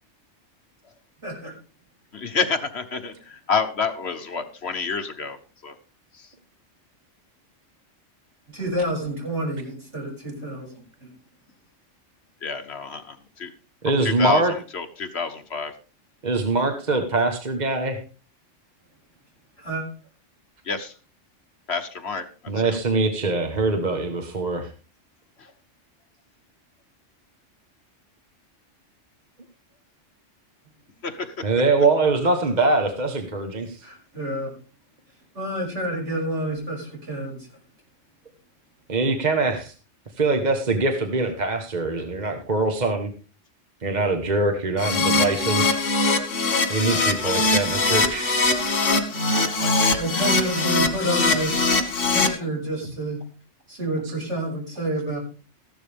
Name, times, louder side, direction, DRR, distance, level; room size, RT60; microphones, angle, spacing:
voice 1, 1.2-1.5 8.5-11.1 19.6-19.8 33.8-34.5 35.3-37.5 49.9-51.7 52.1-53.2 53.7-55.2, right 1 dB, 65° right, -2 dB, 6.3 m, -29 dB
voice 2, 2.1-5.8 6.1-6.3 12.4-13.5 13.9-15.7 20.6-20.9 21.7-22.8 25.4-25.5 31.0-31.5 47.2-47.3 49.6-50.3, left 5 dB, 60° left, 8 dB, 1.4 m, -29 dB
voice 3, 13.8-14.5 16.2-18.0 22.5-24.7 31.4-33.8 38.9-39.7 40.2-43.1 43.8-45.8 46.7-48.5 54.0-54.1, right 3 dB, 35° right, 5 dB, 1.3 m, -23 dB
Keyboard (musical), 44.8-52.3, left 3 dB, 75° left, 2.0 m, -22 dB
14.5 x 11.5 x 3.5 m, 0.36 s
omnidirectional pair, 1.3 m